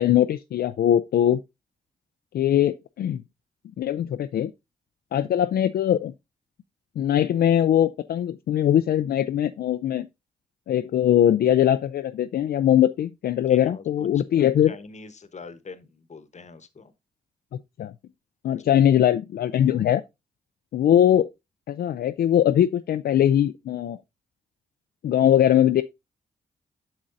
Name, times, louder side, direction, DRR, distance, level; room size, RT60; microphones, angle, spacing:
voice 1, 0.0-1.4 2.3-3.2 3.8-4.5 5.1-6.1 7.0-10.1 10.7-14.7 17.8-17.9 18.4-20.0 20.7-21.3 21.7-24.0 25.0-25.8, left 10 dB, 70° left, 0.4 m, -21 dB
voice 2, 13.4-16.9 18.6-18.7, left 4 dB, 45° left, 1.0 m, -44 dB
8.6 x 6.2 x 2.6 m
supercardioid pair, 50°, 17 cm